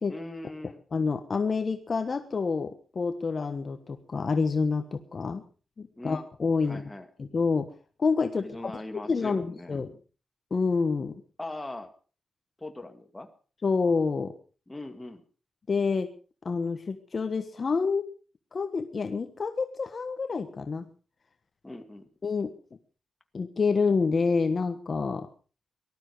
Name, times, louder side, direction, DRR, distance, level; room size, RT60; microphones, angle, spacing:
voice 1, 0.1-0.8 5.9-6.2 6.6-7.1 8.3-9.8 11.4-11.9 12.6-13.3 14.7-15.2 21.6-22.1, left 2 dB, 15° left, 6 dB, 2.1 m, -40 dB
voice 2, 0.9-5.4 5.8-6.8 7.2-7.7 8.0-8.7 9.1-9.9 10.5-11.1 13.6-14.3 15.7-16.1 16.4-18.0 18.5-20.9 22.2-22.5 23.3-25.3, left 4 dB, 40° left, 8 dB, 1.3 m, -28 dB
19.0 x 12.5 x 4.7 m, 0.38 s
wide cardioid pair, 115°, 0 cm